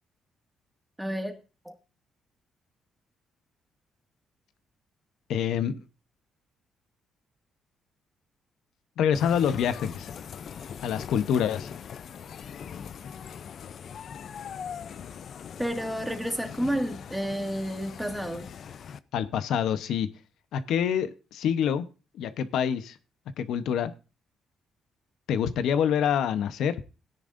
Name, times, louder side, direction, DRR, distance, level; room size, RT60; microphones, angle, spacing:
voice 1, 1.0-1.4 1.6-1.7 15.6-18.5, equal, 5° right, 2.0 m, -30 dB
voice 2, 5.3-5.7 9.0-10.1 10.8-11.7 19.1-20.1 20.5-21.9 22.2-23.0 23.4-23.9 25.3-26.8, left 8 dB, 80° left, 0.9 m, -26 dB
sound 1, 9.1-19.0, left 7 dB, 60° left, 0.5 m, -41 dB
17.0 x 10.0 x 2.6 m
cardioid pair, 90°, 0 cm